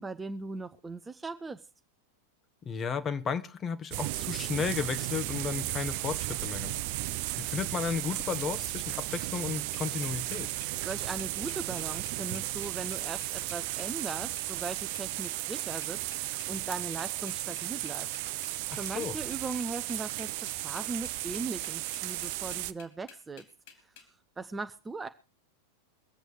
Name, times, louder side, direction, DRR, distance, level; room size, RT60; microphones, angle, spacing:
voice 1, 0.0-1.6 10.8-23.5 24.4-25.1, right 3 dB, 10° right, 0.8 m, -39 dB
voice 2, 2.6-6.8 7.4-10.5 18.7-19.2, left 6 dB, 25° left, 1.3 m, -34 dB
sound 1, 3.9-22.7, right 17 dB, 45° right, 0.7 m, -35 dB
sound 2, 9.7-24.1, left 8 dB, 50° left, 3.6 m, -52 dB
23.0 x 8.1 x 4.7 m
figure-of-eight pair, 90°, 0 cm